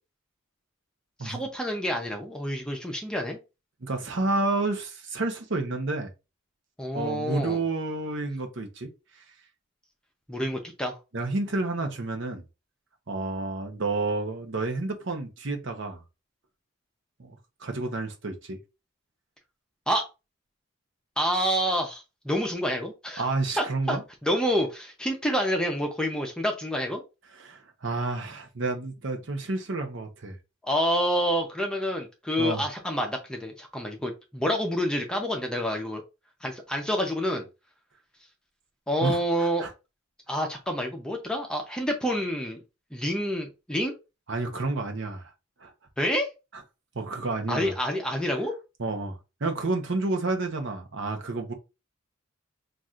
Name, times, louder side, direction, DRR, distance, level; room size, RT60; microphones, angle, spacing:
voice 1, 1.2-3.4 6.8-7.6 10.3-11.0 19.9-20.1 21.2-23.2 23.6-27.0 30.6-36.0 36.4-37.5 38.9-39.7 40.3-42.6 42.9-43.9 46.0-46.3 47.5-48.5, equal, 5° left, 0.7 m, -28 dB
voice 2, 3.8-6.1 6.9-8.9 9.1-9.2 11.1-12.4 13.1-16.0 17.2-18.6 23.2-24.0 27.3-30.4 32.4-32.6 39.0-39.7 44.3-45.3 45.6-45.7 46.9-47.7 48.8-51.5, right 2 dB, 60° right, 0.9 m, -30 dB
5.9 x 2.6 x 2.4 m
head